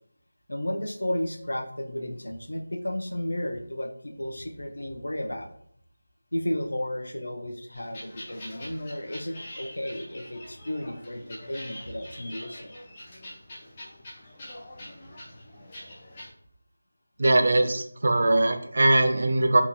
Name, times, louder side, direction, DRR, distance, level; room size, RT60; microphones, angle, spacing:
voice 1, 0.5-5.5 6.3-12.7, left 1 dB, 90° left, 4 dB, 0.5 m, -33 dB
sound 1, 7.7-16.3, left 1 dB, 20° left, 0.4 m, -44 dB
voice 2, 17.2-19.6, right 2 dB, 50° right, 7 dB, 0.3 m, -21 dB
2.8 x 2.6 x 2.2 m, 0.68 s
figure-of-eight pair, 175°, 0 cm